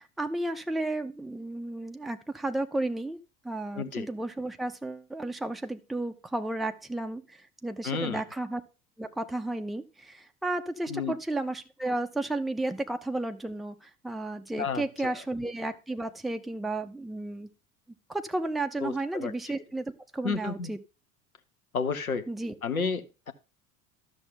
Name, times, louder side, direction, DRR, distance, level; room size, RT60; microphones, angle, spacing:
voice 1, 0.0-3.2 3.4-8.6 9.0-17.5 18.1-20.8 22.3-22.5, right 2 dB, ahead, 6 dB, 0.7 m, -33 dB
voice 2, 3.7-4.1 7.8-8.2 10.9-11.1 14.6-15.2 18.8-19.6 20.2-20.7 21.7-22.3 22.6-23.3, left 5 dB, 85° left, 9 dB, 1.0 m, -32 dB
13.0 x 6.5 x 3.8 m, 0.32 s
figure-of-eight pair, 70°, 41 cm